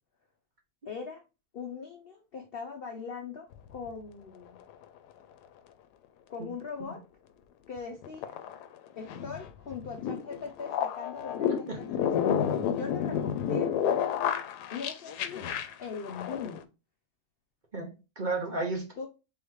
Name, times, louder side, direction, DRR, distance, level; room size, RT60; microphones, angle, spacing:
voice 1, 0.8-1.2 1.5-4.6 6.3-7.0 7.7-8.4 8.9-12.1 12.6-13.7 14.7-16.6 19.0-19.1, left 5 dB, 60° left, 3 dB, 0.6 m, -40 dB
sound 1, 3.5-3.9 7.8-16.6, left 8 dB, 85° left, 1.1 m, -30 dB
voice 2, 17.7-19.1, right 3 dB, 35° right, 0 dB, 1.1 m, -33 dB
3.9 x 3.5 x 3.0 m, 0.29 s
omnidirectional pair, 1.7 m